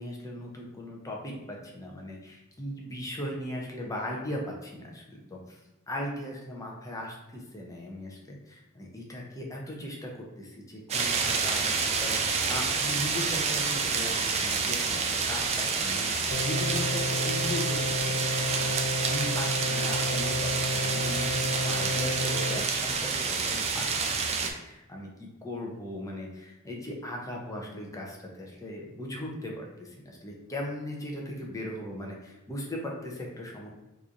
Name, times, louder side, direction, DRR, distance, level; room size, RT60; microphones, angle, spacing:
voice 1, 0.0-5.6 5.9-10.1 10.4-24.1 24.6-33.7, left 1 dB, 15° left, -1 dB, 0.6 m, -38 dB
sound 1, 10.9-24.5, right 5 dB, 30° right, 0.4 m, -28 dB
sound 2, 16.3-22.6, left 1 dB, 65° left, 0.4 m, -32 dB
3.1 x 2.6 x 3.6 m, 1.0 s
head